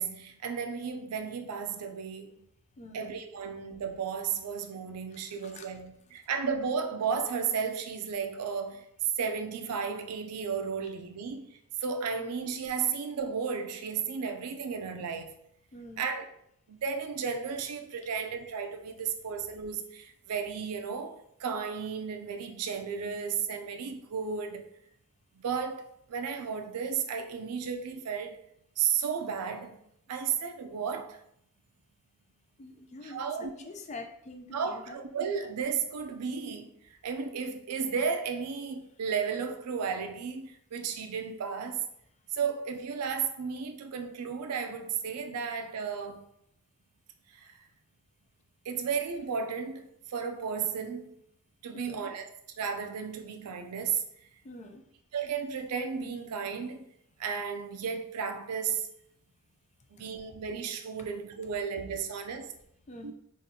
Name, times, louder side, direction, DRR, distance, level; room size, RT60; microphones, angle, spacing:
voice 1, 0.0-2.4 2.9-8.9 9.2-15.4 16.0-16.2 16.7-24.7 25.4-28.4 28.8-29.8 30.1-31.2 33.0-33.7 34.5-36.7 37.0-41.8 42.3-46.2 47.3-47.6 48.7-49.8 50.1-51.1 51.6-52.3 52.6-54.0 55.1-56.8 57.2-58.9 59.9-62.5 63.0-63.1, right 6 dB, 90° right, 0.4 m, -34 dB
voice 2, 2.8-3.1 5.1-5.8 15.7-16.0 32.6-35.0 42.4-42.5 51.7-52.1 54.4-54.8 62.9-63.1, left 2 dB, 30° left, 0.4 m, -46 dB
4.0 x 2.6 x 2.7 m
head